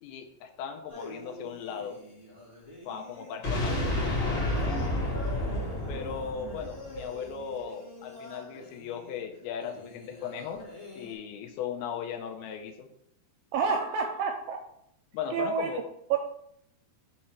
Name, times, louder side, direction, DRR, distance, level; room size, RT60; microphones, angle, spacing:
voice 1, 0.0-2.0 2.9-4.0 5.9-10.6 11.0-12.9 15.1-15.8, left 7 dB, 80° left, 5 dB, 2.6 m, -37 dB
sound 1, 0.9-11.1, left 2 dB, 20° left, 1.7 m, -45 dB
sound 2, 3.4-7.4, left 1 dB, 45° left, 2.6 m, -30 dB
voice 2, 13.5-14.6 15.3-15.7 16.1-16.2, right 6 dB, 80° right, 4 dB, 2.0 m, -28 dB
5.6 x 4.4 x 6.1 m, 0.72 s
omnidirectional pair, 4.6 m